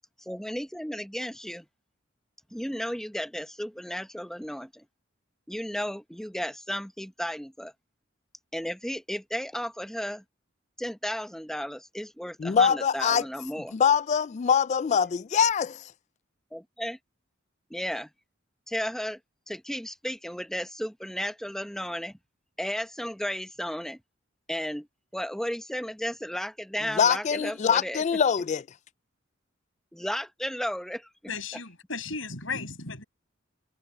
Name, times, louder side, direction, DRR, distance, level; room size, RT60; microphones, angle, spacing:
voice 1, 0.2-1.7 2.5-4.8 5.5-7.7 8.5-10.2 10.8-13.7 16.5-17.0 17.7-18.1 18.7-19.2 19.5-22.2 22.6-24.0 24.5-24.9 25.1-28.0 29.9-31.1, equal, ahead, 0.9 m, -34 dB
voice 2, 12.4-13.2 13.7-15.9 26.9-28.6, left 7 dB, 35° left, 0.3 m, -23 dB
voice 3, 31.3-33.0, left 4 dB, 75° left, 7.9 m, -35 dB
head